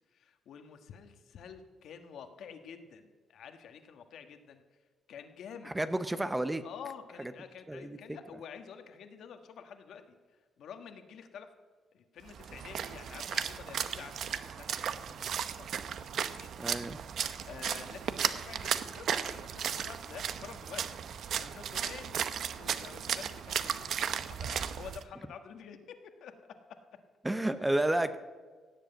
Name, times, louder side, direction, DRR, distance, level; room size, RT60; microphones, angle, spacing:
voice 1, 0.1-4.6 5.1-5.7 6.6-10.2 10.6-11.5 11.9-16.8 17.1-21.0 21.4-22.2 22.5-26.6 27.6-28.0, left 7 dB, 70° left, 7 dB, 1.5 m, -49 dB
voice 2, 5.7-6.6 7.7-8.0 16.6-17.0 27.2-28.2, right 1 dB, 10° right, 11 dB, 0.7 m, -30 dB
Splash splatter, 12.3-25.0, right 8 dB, 60° right, 0.7 m, -35 dB
17.0 x 7.6 x 9.1 m, 1.5 s
cardioid pair, 135°, 0 cm